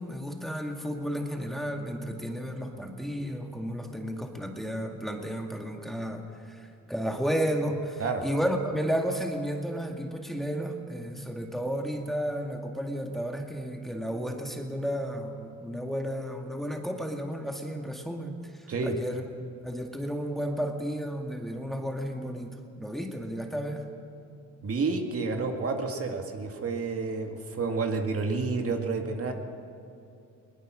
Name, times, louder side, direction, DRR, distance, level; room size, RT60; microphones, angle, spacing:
voice 1, 0.0-19.3 19.6-23.8, equal, ahead, 2 dB, 2.1 m, -32 dB
voice 2, 24.6-29.3, right 4 dB, 50° right, 3 dB, 2.1 m, -30 dB
21.0 x 19.5 x 6.4 m, 2.6 s
cardioid pair, 90°, 30 cm